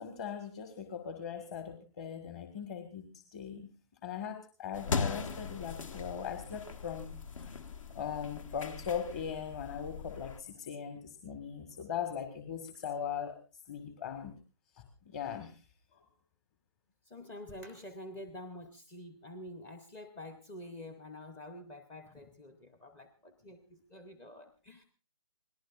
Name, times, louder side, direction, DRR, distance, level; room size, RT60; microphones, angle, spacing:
voice 1, 0.0-3.7 4.0-7.5 7.9-14.3 14.7-15.6, left 7 dB, 25° left, 7 dB, 1.6 m, -40 dB
sound 1, 4.7-10.4, left 5 dB, 60° left, 1.7 m, -39 dB
voice 2, 17.1-24.8, left 1 dB, 10° left, 8 dB, 0.7 m, -48 dB
26.5 x 18.5 x 2.4 m, 0.33 s
hypercardioid pair, 160°, 18 cm